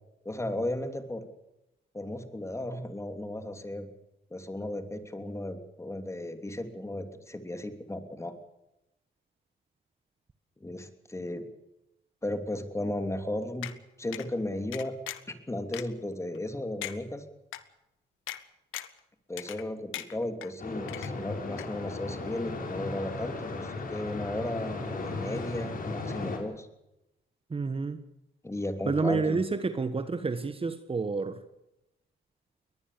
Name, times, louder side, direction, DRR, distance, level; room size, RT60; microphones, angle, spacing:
voice 1, 0.2-1.3 1.9-3.9 4.3-8.3 10.6-11.5 12.2-13.7 14.0-15.0 15.3-17.2 19.3-26.7 28.4-29.4, left 1 dB, 15° left, 3.2 m, -35 dB
sound 1, 13.6-13.7 14.1-14.3 14.7-15.3 15.7-15.8 16.3-16.4 16.8-17.0 17.5-17.6 18.3-18.4 18.7-19.0 19.4-19.7 19.9-20.5 20.9-21.3 21.6-21.7, left 13 dB, 85° left, 1.4 m, -39 dB
sound 2, 20.6-26.4, left 3 dB, 45° left, 5.6 m, -36 dB
voice 2, 27.5-28.0 28.9-31.4, right 4 dB, 30° right, 1.6 m, -29 dB
22.0 x 19.5 x 7.0 m
cardioid pair, 90°, 20 cm